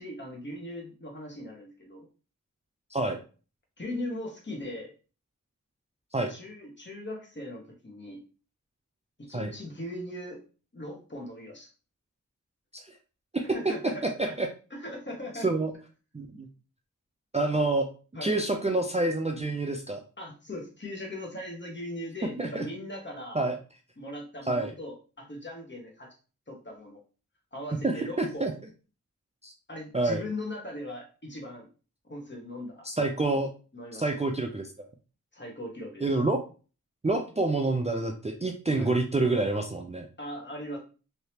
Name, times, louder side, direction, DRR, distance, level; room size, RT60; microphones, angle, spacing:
voice 1, 0.0-2.1 3.8-4.9 6.3-8.2 9.2-10.4 10.7-11.7 13.4-14.3 14.7-15.5 18.1-18.3 20.2-23.4 24.0-26.1 26.5-27.0 27.5-28.5 29.7-31.7 32.0-32.9 33.7-34.1 35.3-36.1 38.8-38.9 40.2-40.8, left 1 dB, 35° left, 0 dB, 1.1 m, -39 dB
voice 2, 16.1-16.5 17.3-17.9 18.2-20.0 22.2-22.7 23.3-23.5 24.5-24.7 27.8-28.5 29.4-29.5 29.9-30.2 32.8-33.5 34.0-34.9 36.0-36.4 37.0-40.1, right 2 dB, 20° right, 3 dB, 0.4 m, -27 dB
3.3 x 2.8 x 2.8 m, 0.36 s
wide cardioid pair, 55°, 32 cm